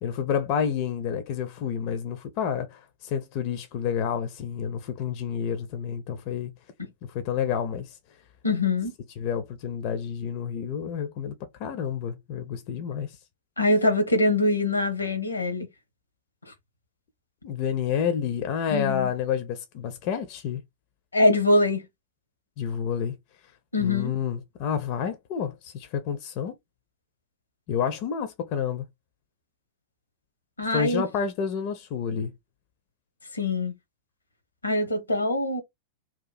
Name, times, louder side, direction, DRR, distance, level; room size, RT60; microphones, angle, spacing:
voice 1, 0.0-6.5 7.0-8.0 9.2-13.2 17.4-20.6 22.6-23.1 23.8-26.5 27.7-28.9 30.7-32.3, left 7 dB, 45° left, 0.6 m, -29 dB
voice 2, 8.4-8.9 13.6-15.7 18.7-19.1 21.1-21.8 23.7-24.1 30.6-31.0 33.3-33.7 34.6-35.6, left 2 dB, 80° left, 1.0 m, -23 dB
2.9 x 2.3 x 4.0 m
figure-of-eight pair, 90°, 0 cm